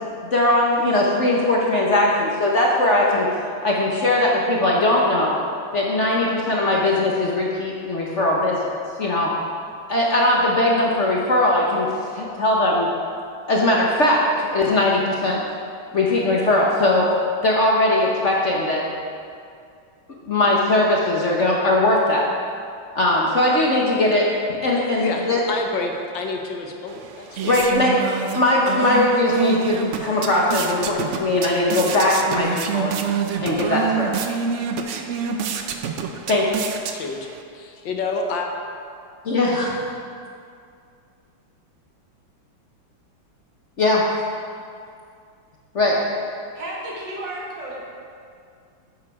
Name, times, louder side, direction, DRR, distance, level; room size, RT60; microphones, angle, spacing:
voice 1, 0.2-3.3 3.6-5.4 5.7-9.3 9.9-12.9 13.5-15.4 15.9-18.8 20.3-22.2 22.9-25.4 27.4-28.0 28.3-33.0 33.4-34.1 36.3-36.5 39.2-39.8 43.8-44.1 45.7-46.0, left 1 dB, 45° left, -3 dB, 1.1 m, -20 dB
voice 2, 25.0-27.8 36.9-37.3 37.5-38.5, left 3 dB, 70° left, 2 dB, 1.7 m, -29 dB
sound 1, 26.9-37.4, right 6 dB, 90° right, 0.6 m, -27 dB
voice 3, 46.5-47.8, right 1 dB, 65° right, -4 dB, 2.5 m, -32 dB
11.0 x 7.3 x 4.8 m, 2.3 s
omnidirectional pair, 2.1 m